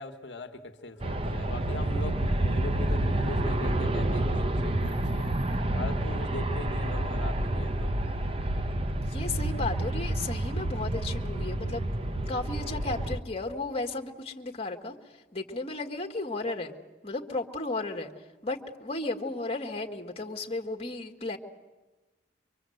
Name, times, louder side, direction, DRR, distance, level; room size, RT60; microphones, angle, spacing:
voice 1, 0.0-5.4 5.7-7.9, left 2 dB, 65° left, 6 dB, 1.2 m, -40 dB
Aircraft, 1.0-13.2, right 1 dB, 30° right, 0.8 m, -29 dB
voice 2, 9.0-11.9 12.3-14.9 15.3-16.7 17.0-18.1 18.4-21.4, left 2 dB, 30° left, 3 dB, 1.6 m, -34 dB
24.0 x 24.0 x 7.8 m, 1.2 s
head